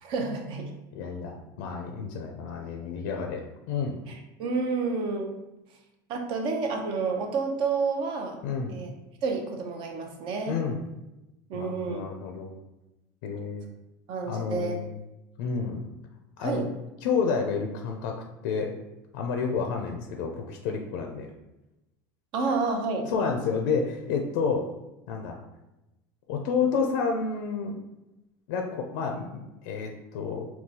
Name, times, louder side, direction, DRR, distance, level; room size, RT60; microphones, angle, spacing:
voice 1, 0.0-0.7 4.1-5.4 6.1-8.4 8.7-8.9 9.2-10.6 11.5-12.0 14.1-14.8 16.4-16.7 22.3-23.1, right 4 dB, 55° right, 4 dB, 0.6 m, -29 dB
voice 2, 0.9-3.4 3.7-4.0 8.4-8.7 10.5-10.8 11.5-12.6 13.2-13.6 14.3-15.0 15.4-15.9 16.4-16.6 17.0-18.7 19.1-21.3 23.1-24.7 25.1-25.4 26.3-27.8 28.5-30.5, left 5 dB, 80° left, 2 dB, 0.4 m, -30 dB
3.7 x 2.3 x 2.8 m, 0.96 s
supercardioid pair, 100°, 10 cm